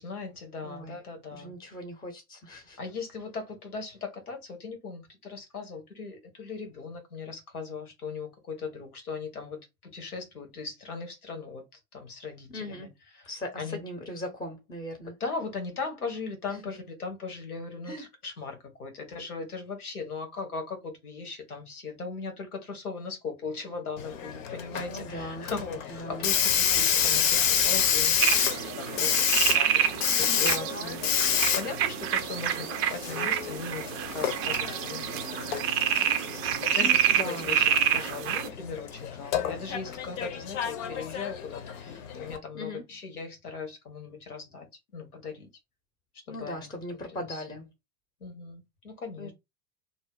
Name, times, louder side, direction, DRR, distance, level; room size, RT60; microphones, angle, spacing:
voice 1, 0.0-1.5 2.8-12.9 13.1-13.3 13.6-13.8 15.2-30.5 31.0-35.5 36.5-45.5 46.3-46.7 47.1-47.4 48.2-49.3, left 4 dB, 85° left, 1.2 m, -39 dB
voice 2, 0.6-1.0 1.3-2.8 12.5-12.9 13.3-15.1 16.5-16.6 17.8-18.1 24.9-25.5 25.9-26.3 30.2-31.0 35.9-37.6 42.5-42.8 46.3-47.6 49.2-49.3, equal, 10° left, 0.7 m, -39 dB
Hiss, 24.0-42.4, left 8 dB, 60° left, 0.8 m, -29 dB
sound 1, 28.2-38.5, right 9 dB, 30° right, 0.4 m, -28 dB
2.7 x 2.0 x 3.6 m
figure-of-eight pair, 85°, 44 cm